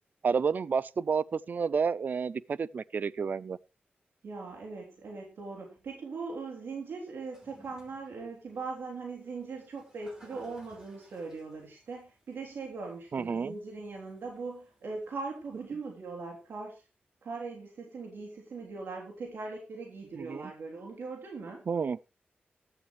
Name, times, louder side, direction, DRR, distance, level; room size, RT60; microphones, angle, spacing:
voice 1, 0.2-3.6 13.1-13.6 20.2-20.5 21.7-22.0, right 5 dB, 55° right, 0.6 m, -30 dB
voice 2, 4.2-16.8 17.2-21.6, right 4 dB, 90° right, 3.4 m, -40 dB
Toilet flush, 7.2-16.5, equal, 15° right, 5.6 m, -62 dB
14.5 x 11.5 x 3.3 m
wide cardioid pair, 125°, 4 cm